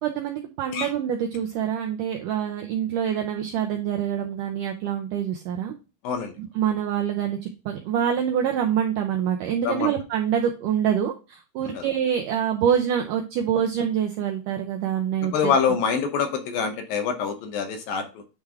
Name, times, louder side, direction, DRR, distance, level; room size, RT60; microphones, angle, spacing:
voice 1, 0.0-5.7 6.4-15.8, right 9 dB, 85° right, 3 dB, 1.8 m, -26 dB
voice 2, 15.3-18.2, left 6 dB, 75° left, 6 dB, 2.5 m, -25 dB
9.3 x 3.4 x 3.3 m, 0.30 s
omnidirectional pair, 4.6 m